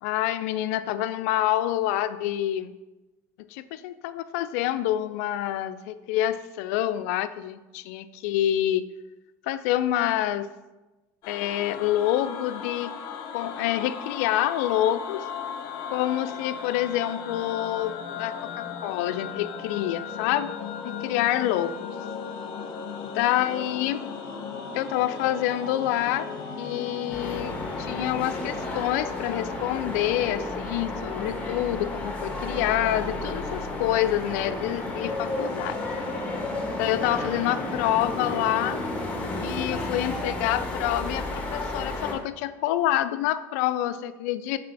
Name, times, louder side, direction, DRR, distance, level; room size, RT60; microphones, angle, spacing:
voice 1, 0.0-2.7 3.4-8.8 9.4-10.5 11.3-12.9 13.3-15.2 15.9-20.5 20.8-21.7 23.0-24.0 24.7-26.3 26.6-35.8 36.7-38.8 39.4-44.6, left 13 dB, 75° left, 13 dB, 0.4 m, -27 dB
sound 1, 11.2-28.8, left 6 dB, 55° left, 0.9 m, -36 dB
sound 2, 27.1-42.1, left 2 dB, 15° left, 1.5 m, -32 dB
4.8 x 4.1 x 4.6 m, 1.1 s
supercardioid pair, 110°, 8 cm